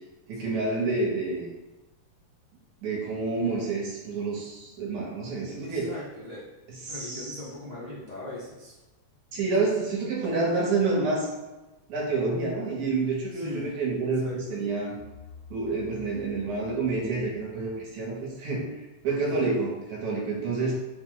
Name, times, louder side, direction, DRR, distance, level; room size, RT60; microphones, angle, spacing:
voice 1, 0.3-1.5 2.8-5.9 6.9-7.4 9.3-11.3 11.9-15.0 15.5-18.6 19.0-20.7, right 3 dB, 75° right, -3 dB, 2.3 m, -28 dB
voice 2, 5.6-6.4 6.8-8.8 9.3-9.7 13.3-13.7 14.1-14.5 19.0-19.5, left 1 dB, 50° left, -9 dB, 0.5 m, -40 dB
sound 1, 15.0-18.1, left 6 dB, 85° left, 2.1 m, -50 dB
5.5 x 2.2 x 3.7 m, 1.1 s
omnidirectional pair, 3.4 m